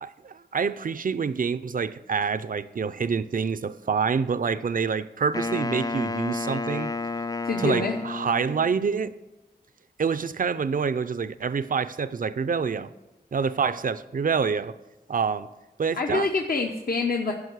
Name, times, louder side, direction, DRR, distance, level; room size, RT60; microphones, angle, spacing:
voice 1, 0.0-6.9 7.6-9.2 10.0-12.9 13.3-14.7 15.1-15.5 15.8-16.3, right 6 dB, 55° right, 0.5 m, -27 dB
Wind instrument woodwind instrument, 5.3-8.8, left 3 dB, 20° left, 0.4 m, -31 dB
voice 2, 7.4-8.0 16.0-17.3, left 3 dB, 60° left, 0.8 m, -26 dB
11.5 x 5.3 x 8.0 m
wide cardioid pair, 85°, 17 cm